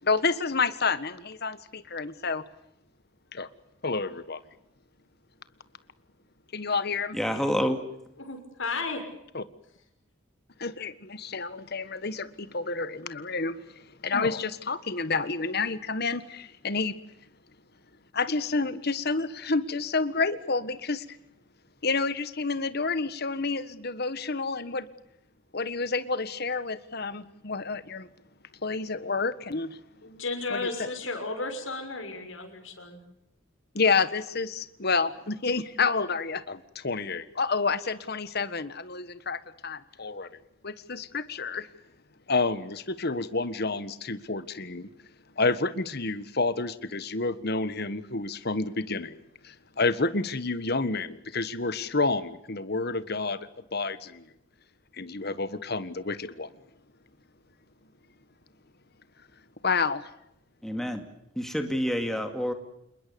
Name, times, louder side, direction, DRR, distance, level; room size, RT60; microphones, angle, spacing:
voice 1, 0.0-2.4 3.3-3.5 3.8-4.4 6.5-7.2 9.3-9.4 10.6-17.0 18.1-21.2 21.8-24.9 25.5-28.1 28.6-29.8 30.5-30.9 33.7-40.3 40.6-41.7 42.3-44.9 45.3-54.3 54.9-56.5 59.6-60.1, left 4 dB, 55° left, 13 dB, 1.5 m, -29 dB
voice 2, 7.1-7.8 60.6-61.0 61.4-62.5, equal, ahead, 5 dB, 2.3 m, -28 dB
voice 3, 8.2-9.0 30.0-33.0, left 3 dB, 80° left, 5 dB, 6.5 m, -34 dB
28.0 x 21.5 x 7.1 m, 0.80 s
head